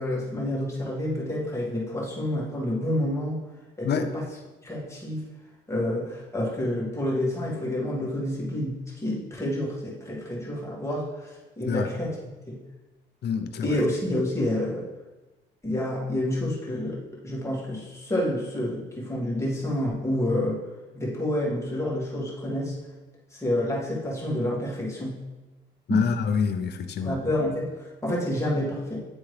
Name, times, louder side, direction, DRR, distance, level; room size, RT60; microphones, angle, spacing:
voice 1, 0.0-3.4 3.8-4.2 4.6-5.2 5.7-12.2 12.5-12.6 13.6-14.9 15.6-20.6 20.9-22.8 23.3-25.2 25.9-26.0 27.0-29.0, left 1 dB, 15° left, -5 dB, 1.9 m, -28 dB
voice 2, 13.2-13.8 25.9-27.2, left 6 dB, 55° left, 7 dB, 0.6 m, -27 dB
9.3 x 3.5 x 3.3 m, 1.1 s
cardioid pair, 90°, 20 cm